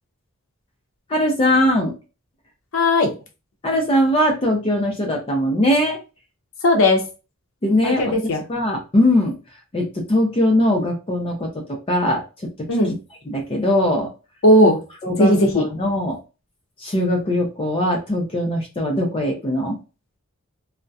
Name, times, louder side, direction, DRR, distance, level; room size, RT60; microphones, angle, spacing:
voice 1, 1.1-1.9 3.6-6.0 7.6-8.0 8.5-9.4 9.7-12.7 13.3-14.1 15.0-16.2 16.8-19.8, left 1 dB, 25° left, 2 dB, 0.5 m, -20 dB
voice 2, 2.7-3.1 6.6-7.0 7.8-8.4 12.7-12.9 14.4-14.8 15.2-15.6, left 1 dB, 70° left, 2 dB, 0.6 m, -16 dB
2.6 x 2.1 x 2.3 m, 0.31 s
head